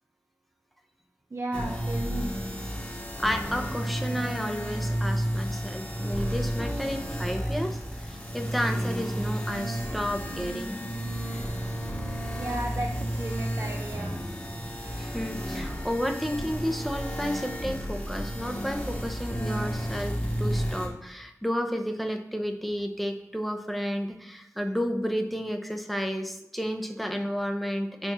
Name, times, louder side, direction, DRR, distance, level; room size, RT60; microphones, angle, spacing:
voice 1, 1.3-2.3 12.4-14.2 15.6-15.7, right 1 dB, 50° right, 1 dB, 0.6 m, -34 dB
sound 1, 1.5-20.9, equal, 25° left, 1.4 m, -32 dB
voice 2, 3.2-10.8 15.0-28.1, equal, ahead, 4 dB, 0.7 m, -32 dB
4.6 x 4.3 x 5.5 m, 0.83 s
wide cardioid pair, 70°, 6 cm